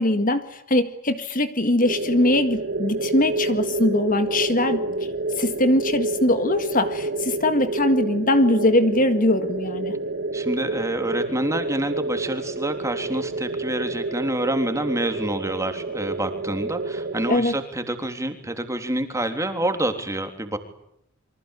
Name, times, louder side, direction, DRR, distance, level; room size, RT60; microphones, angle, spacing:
voice 1, 0.0-4.8 5.4-10.0 17.3-17.6, left 1 dB, 40° left, 10 dB, 1.9 m, -21 dB
sound 1, 1.8-17.4, right 2 dB, 50° right, 1.6 m, -29 dB
voice 2, 10.3-20.6, right 1 dB, 15° right, 7 dB, 3.4 m, -27 dB
29.0 x 24.5 x 8.4 m, 0.73 s
head